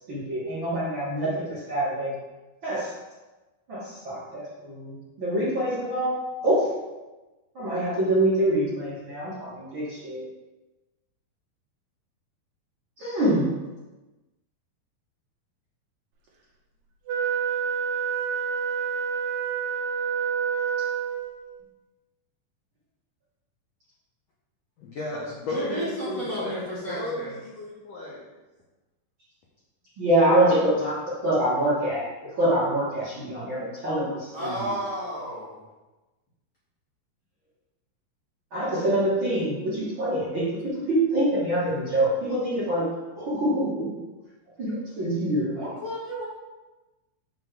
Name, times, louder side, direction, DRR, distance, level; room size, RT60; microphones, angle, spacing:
voice 1, 0.1-2.1 2.6-2.9 3.7-6.7 7.6-10.2 13.0-13.5 30.0-32.1 32.4-34.7 38.5-42.9 43.2-44.0 44.6-45.7, right 1 dB, 45° right, -9 dB, 1.7 m, -25 dB
Wind instrument woodwind instrument, 17.1-21.5, right 7 dB, 70° right, 1.9 m, -28 dB
voice 2, 24.8-28.3, left 1 dB, 65° left, -5 dB, 1.6 m, -34 dB
voice 3, 25.5-27.3 34.3-35.6 45.6-46.2, equal, 35° left, -8 dB, 2.0 m, -32 dB
6.6 x 3.9 x 6.1 m, 1.1 s
omnidirectional pair, 4.2 m